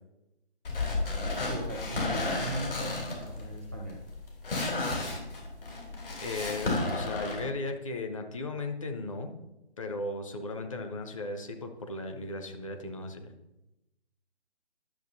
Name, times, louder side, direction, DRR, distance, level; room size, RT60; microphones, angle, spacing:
sound 1, 0.6-7.4, left 2 dB, 55° left, 3.0 m, -32 dB
voice 1, 1.5-4.0, right 1 dB, 15° right, -1 dB, 0.4 m, -38 dB
voice 2, 6.2-9.4 9.8-13.3, left 2 dB, 30° left, 5 dB, 0.7 m, -36 dB
11.5 x 6.6 x 2.7 m, 0.94 s
figure-of-eight pair, 145°, 33 cm